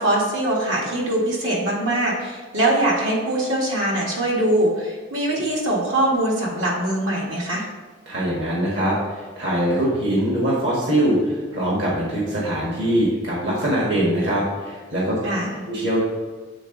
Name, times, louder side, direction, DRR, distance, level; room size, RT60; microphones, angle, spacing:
voice 1, 0.0-7.7 15.2-15.5, right 1 dB, 80° right, -4 dB, 1.9 m, -22 dB
voice 2, 8.0-15.2 15.6-16.0, right 1 dB, 60° right, -6 dB, 1.7 m, -22 dB
8.0 x 3.9 x 3.9 m, 1.5 s
head